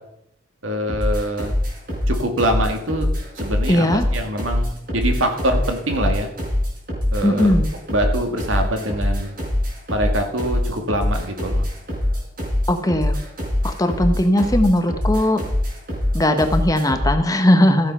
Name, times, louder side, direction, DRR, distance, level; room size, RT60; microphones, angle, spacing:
voice 1, 0.6-1.6 2.1-3.1 3.4-6.3 7.1-7.6 7.9-9.3 9.9-11.7, right 1 dB, 85° right, 4 dB, 2.2 m, -24 dB
sound 1, 0.9-17.2, left 1 dB, 45° right, 4.8 m, -23 dB
voice 2, 3.7-4.0 7.2-7.7 12.7-13.2 13.6-15.4 16.1-17.9, left 1 dB, 15° left, 7 dB, 0.9 m, -18 dB
14.5 x 7.4 x 5.5 m, 0.78 s
head